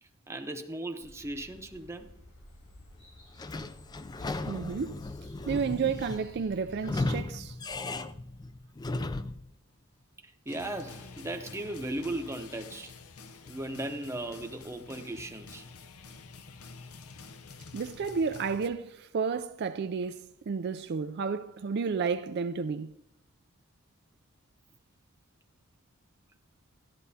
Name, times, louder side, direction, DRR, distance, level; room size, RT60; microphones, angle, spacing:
voice 1, 0.0-2.1 10.2-12.9 13.5-15.7, right 1 dB, 15° right, 0.8 m, -37 dB
sound 1, 1.0-7.1, left 1 dB, 70° left, 5.1 m, -53 dB
Sliding door / Squeak, 3.4-9.5, left 2 dB, 20° left, 0.4 m, -36 dB
voice 2, 4.5-5.0 5.5-7.6 17.7-22.9, right 5 dB, 50° right, 0.4 m, -31 dB
sound 2, 10.5-18.7, left 4 dB, 90° left, 0.7 m, -48 dB
13.5 x 11.0 x 2.7 m
head